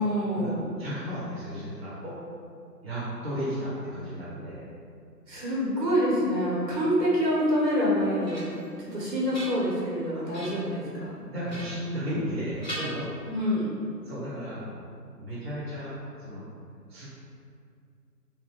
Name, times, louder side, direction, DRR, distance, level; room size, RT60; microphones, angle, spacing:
voice 1, 0.0-0.6 5.3-8.4 8.8-11.2 13.2-13.7, equal, 90° right, -6 dB, 1.3 m, -26 dB
voice 2, 0.8-2.1 2.8-4.6 11.3-13.1 14.0-14.7 15.2-15.9 16.2-16.4 16.9-17.1, equal, 40° right, -9 dB, 0.8 m, -34 dB
sound 1, 7.8-8.7 9.1-9.9 10.3-10.8 11.5-12.3 12.6-13.6, equal, 30° left, 0.5 m, -40 dB
2.6 x 2.2 x 2.9 m, 2.3 s
figure-of-eight pair, 155°, 49 cm